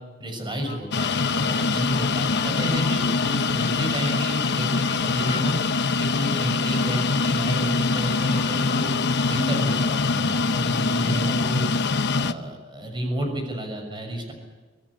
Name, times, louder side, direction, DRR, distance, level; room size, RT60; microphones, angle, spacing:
voice 1, 0.2-5.5 6.0-8.9 9.2-11.7 12.1-14.3, equal, 25° right, 4 dB, 6.4 m, -31 dB
sound 1, 0.7-9.8, left 5 dB, 30° left, 2.8 m, -41 dB
sound 2, 0.9-12.3, left 4 dB, 55° left, 1.0 m, -24 dB
25.0 x 18.0 x 9.8 m, 1.3 s
head